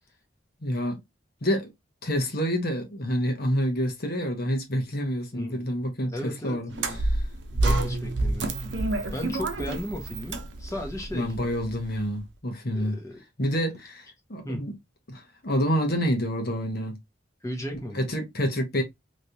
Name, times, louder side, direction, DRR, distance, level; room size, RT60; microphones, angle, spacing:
voice 1, 0.6-1.0 1.4-1.7 2.0-6.7 7.0-7.2 11.1-13.0 13.4-14.7 15.1-17.0 17.9-18.8, equal, 55° left, 1.2 m, -28 dB
voice 2, 5.3-5.6 6.1-7.0 7.5-8.5 9.1-11.3 12.7-13.2 14.4-14.7 17.4-18.0, left 1 dB, 15° left, 0.9 m, -35 dB
sound 1, 6.7-12.0, right 2 dB, 75° right, 0.7 m, -28 dB
3.3 x 3.1 x 2.7 m
head